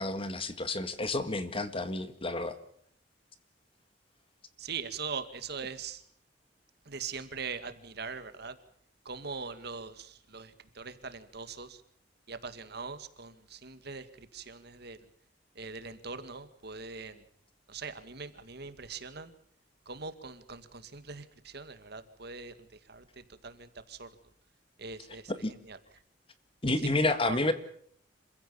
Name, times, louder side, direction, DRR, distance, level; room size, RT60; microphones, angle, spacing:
voice 1, 0.0-2.5 25.4-25.5 26.6-27.5, left 2 dB, 30° left, 11 dB, 1.8 m, -30 dB
voice 2, 4.6-6.0 6.9-8.6 9.1-11.8 12.3-15.0 15.6-17.2 17.7-19.3 19.9-22.5 22.9-24.1 24.8-25.3 25.6-25.8 27.2-27.4, right 5 dB, 60° right, 10 dB, 2.1 m, -41 dB
27.0 x 15.5 x 8.6 m, 0.63 s
head